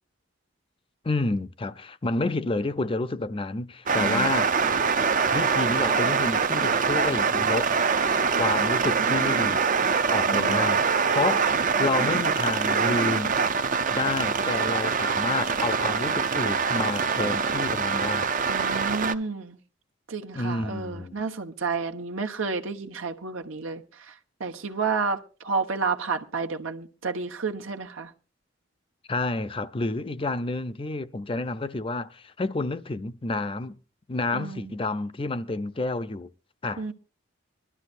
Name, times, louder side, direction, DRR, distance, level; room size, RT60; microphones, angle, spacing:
voice 1, 1.0-4.5 5.3-7.7 8.4-9.7 10.1-10.8 11.1-13.3 13.9-18.3 20.3-21.2 29.1-33.8 34.1-36.3 36.6-36.9, left 3 dB, 25° left, 0.5 m, -29 dB
sound 1, 3.9-19.1, right 5 dB, 40° right, 0.6 m, -24 dB
voice 2, 4.0-4.5 10.3-10.6 18.5-19.6 20.1-24.1 24.4-28.1 34.3-34.7 36.8-36.9, right 4 dB, 90° right, 1.3 m, -31 dB
22.5 x 12.5 x 2.6 m
head